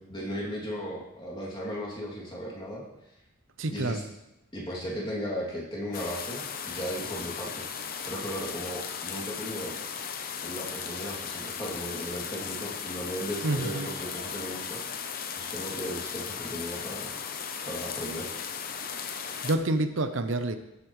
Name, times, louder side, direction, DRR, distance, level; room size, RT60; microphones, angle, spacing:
voice 1, 0.1-2.8 3.7-4.0 4.5-7.7 8.1-9.7 10.4-17.2 17.6-18.3, equal, 20° left, -4 dB, 2.7 m, -36 dB
voice 2, 3.6-4.0 13.4-13.9 19.4-20.6, right 2 dB, 65° right, 8 dB, 0.7 m, -28 dB
sound 1, 5.9-19.6, left 7 dB, 45° left, 0.7 m, -36 dB
18.0 x 8.3 x 3.2 m, 0.92 s
head